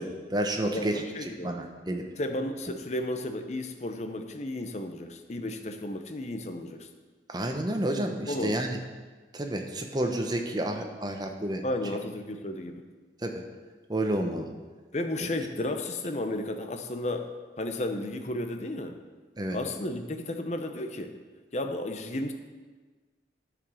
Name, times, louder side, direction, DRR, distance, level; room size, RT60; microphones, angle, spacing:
voice 1, 0.0-1.0 1.4-2.0 7.3-8.8 9.3-11.6 13.2-13.4 13.9-14.5 19.4-19.6, right 1 dB, 25° right, 4 dB, 0.8 m, -30 dB
voice 2, 0.6-1.5 2.2-6.9 8.3-8.6 11.6-12.8 14.9-17.3 17.6-19.0 19.5-21.2 21.5-22.3, left 1 dB, 40° left, 6 dB, 0.7 m, -33 dB
10.5 x 5.1 x 6.3 m, 1.4 s
head